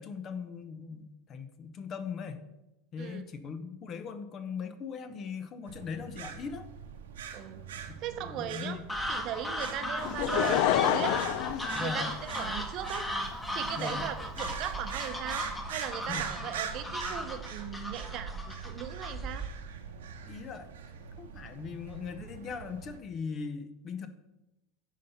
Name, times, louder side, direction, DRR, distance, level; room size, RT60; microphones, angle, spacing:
voice 1, 0.0-2.4 2.9-6.7 7.9-8.8 11.7-12.1 13.8-14.1 16.0-16.5 20.3-24.1, left 5 dB, 40° left, 11 dB, 0.8 m, -40 dB
sound 1, 5.7-23.0, right 7 dB, 70° right, 0.9 m, -43 dB
voice 2, 7.3-8.8 9.1-11.2 11.8-13.1 13.5-19.5, right 10 dB, 45° right, 9 dB, 0.8 m, -38 dB
sound 2, 8.9-19.6, equal, 15° left, 1.4 m, -37 dB
Laughter / Crowd, 10.0-12.6 13.3-13.4, left 11 dB, 55° left, 0.4 m, -28 dB
10.0 x 4.2 x 5.6 m, 0.96 s
figure-of-eight pair, 80°, 0 cm